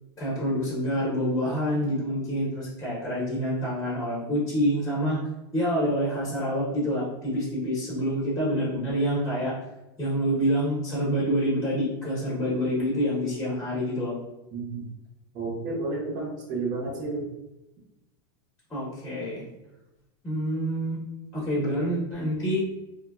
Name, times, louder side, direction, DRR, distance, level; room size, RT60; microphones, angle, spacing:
voice 1, 0.2-5.2 5.5-9.5 10.0-14.1 18.7-19.4 20.2-21.0 21.3-22.6, equal, 10° left, -8 dB, 0.8 m, -27 dB
voice 2, 14.5-14.8 15.3-17.2, right 3 dB, 30° right, -3 dB, 0.6 m, -31 dB
3.0 x 2.2 x 2.3 m, 0.95 s
supercardioid pair, 155°, 14 cm